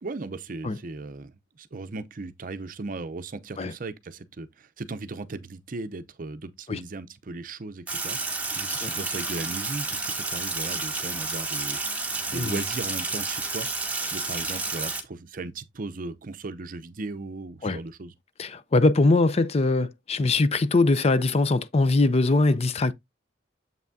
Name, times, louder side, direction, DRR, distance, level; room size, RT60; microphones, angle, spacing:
voice 1, 0.0-13.7 14.1-18.1, right 3 dB, 50° right, 0.6 m, -37 dB
Sink (filling or washing), 7.9-15.0, right 3 dB, 10° right, 1.4 m, -30 dB
voice 2, 18.4-22.9, left 3 dB, 35° left, 0.5 m, -22 dB
7.4 x 5.8 x 2.6 m
head